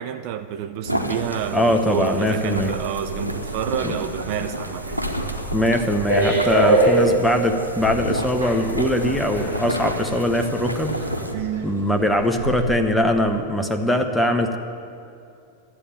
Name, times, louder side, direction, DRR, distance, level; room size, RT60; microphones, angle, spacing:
voice 1, 0.0-4.9 11.3-11.7, right 9 dB, 45° right, 10 dB, 0.5 m, -28 dB
sound 1, 0.8-11.3, equal, 90° left, 0.9 m, -31 dB
voice 2, 1.5-2.7 3.8-3.9 5.5-11.0 11.6-14.6, left 1 dB, 5° left, 4 dB, 0.9 m, -21 dB
sound 2, 1.6-12.8, right 2 dB, 65° right, 1.6 m, -38 dB
sound 3, 2.4-11.4 11.7-11.9, right 1 dB, 90° right, 4.0 m, -25 dB
12.5 x 8.4 x 7.4 m, 2.5 s
figure-of-eight pair, 90°, 0 cm